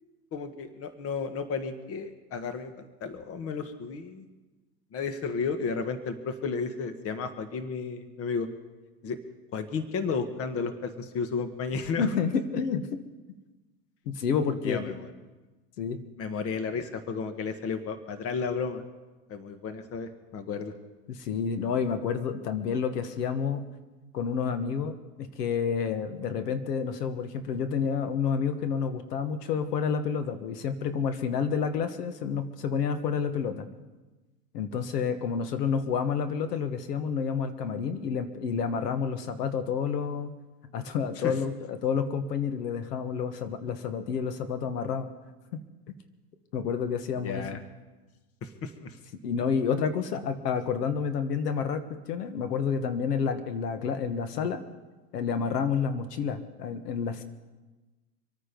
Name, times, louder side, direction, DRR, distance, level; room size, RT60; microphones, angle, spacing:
voice 1, 0.3-4.3 4.9-8.5 9.0-9.2 9.5-12.1 14.6-15.1 16.2-18.8 19.3-20.7 41.2-41.3 47.2-47.6 48.4-49.0, left 5 dB, 30° left, 10 dB, 1.5 m, -33 dB
voice 2, 12.0-13.0 14.0-14.9 15.8-16.1 21.1-23.6 24.1-33.7 34.5-40.3 40.7-45.1 45.5-45.6 46.5-47.6 49.2-54.6 55.1-57.2, left 6 dB, 75° left, 9 dB, 1.6 m, -29 dB
26.0 x 9.3 x 5.3 m, 1.2 s
hypercardioid pair, 120°, 48 cm